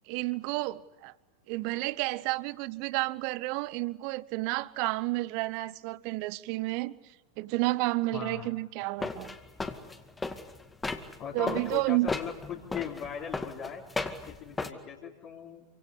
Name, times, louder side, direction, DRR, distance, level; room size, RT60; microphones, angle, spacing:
voice 1, 0.1-1.1 1.5-7.0 7.4-9.3 11.3-12.1, right 21 dB, 45° right, 1.0 m, -31 dB
voice 2, 8.1-8.5 9.0-9.1 11.2-13.8 14.4-15.6, left 7 dB, 35° left, 3.4 m, -39 dB
sound 1, 9.0-11.2 11.5-14.7, left 3 dB, 10° left, 2.0 m, -35 dB
27.5 x 25.0 x 8.3 m
figure-of-eight pair, 90°, 0 cm